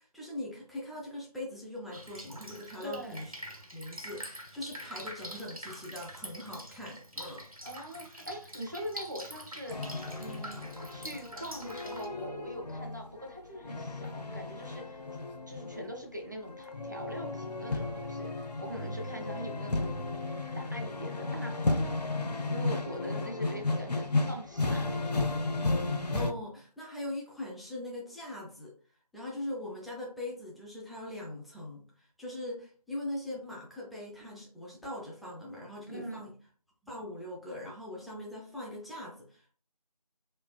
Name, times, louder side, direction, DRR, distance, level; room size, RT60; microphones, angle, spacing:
voice 1, 0.0-3.3 3.7-7.5 26.1-28.7 29.1-36.3 36.8-39.5, left 1 dB, ahead, -4 dB, 0.4 m, -41 dB
Drip, 1.9-12.1, equal, 60° right, 1.1 m, -45 dB
voice 2, 2.8-3.2 7.6-9.8 10.2-15.0 15.5-20.0 20.6-21.9 22.5-25.4 35.9-36.2, equal, 30° right, 0 dB, 0.7 m, -42 dB
sound 1, 9.7-26.3, left 2 dB, 80° left, 0.7 m, -34 dB
4.6 x 3.2 x 2.3 m, 0.42 s
figure-of-eight pair, 170°, 20 cm